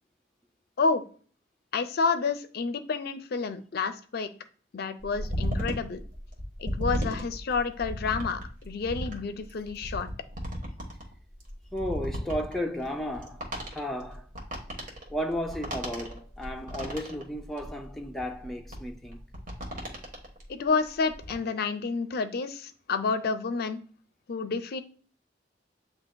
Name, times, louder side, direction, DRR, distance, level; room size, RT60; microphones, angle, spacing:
voice 1, 1.7-4.3 4.7-6.0 6.6-10.1 20.6-23.8 24.3-24.8, left 4 dB, 60° left, 0.4 m, -29 dB
sound 1, 5.0-20.5 20.9-21.3, equal, 50° right, 1.2 m, -35 dB
voice 2, 11.7-14.3 15.1-19.2, equal, ahead, 0.5 m, -34 dB
8.3 x 2.8 x 2.2 m
head